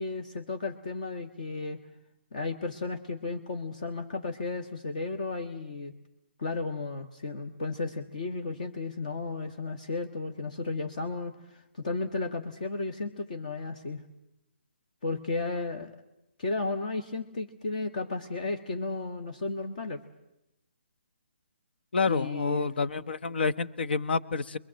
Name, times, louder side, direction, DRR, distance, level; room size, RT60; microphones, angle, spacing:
voice 1, 0.0-1.8 2.3-5.9 6.4-14.0 15.0-15.9 16.4-20.0 22.1-22.8, left 3 dB, 40° left, 8 dB, 1.4 m, -34 dB
voice 2, 21.9-24.6, left 4 dB, 60° left, 16 dB, 1.1 m, -28 dB
25.5 x 22.5 x 7.6 m, 0.87 s
hypercardioid pair, 175°, 6 cm